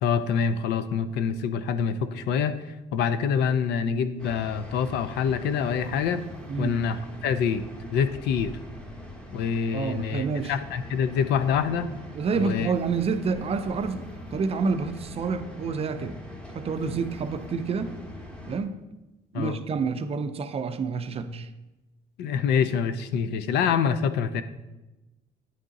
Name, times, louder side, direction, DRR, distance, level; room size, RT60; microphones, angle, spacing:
voice 1, 0.0-2.7 2.9-6.2 6.6-7.6 7.9-8.5 9.3-11.9 12.4-12.7 19.3-19.6 22.2-24.4, left 7 dB, 85° left, 0.5 m, -26 dB
sound 1, 4.2-18.6, left 1 dB, 5° left, 1.0 m, -42 dB
voice 2, 9.7-10.5 12.1-16.2 16.5-18.0 18.5-18.8 19.3-21.5, right 5 dB, 35° right, 0.5 m, -28 dB
9.3 x 3.7 x 3.9 m
cardioid pair, 110°, 17 cm